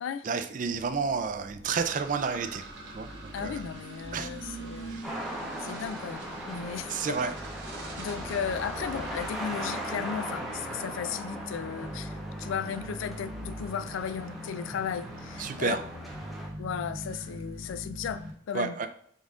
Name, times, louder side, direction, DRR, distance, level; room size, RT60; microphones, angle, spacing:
voice 1, 0.2-2.6 2.9-3.1 3.4-3.6 4.1-4.3 4.9-5.1 6.9-7.3 15.4-15.8 18.5-18.9, right 5 dB, 40° right, 9 dB, 0.3 m, -30 dB
sound 1, 0.7-18.3, equal, 90° right, 1.0 m, -44 dB
sound 2, 1.8-11.3, right 2 dB, 60° right, 0.9 m, -44 dB
voice 2, 3.3-5.0 5.6-7.2 8.0-15.8 16.6-18.2 18.5-18.8, left 7 dB, 80° left, 13 dB, 0.3 m, -35 dB
sound 3, 5.0-16.5, equal, ahead, 0.6 m, -39 dB
5.3 x 3.7 x 2.4 m, 0.64 s
head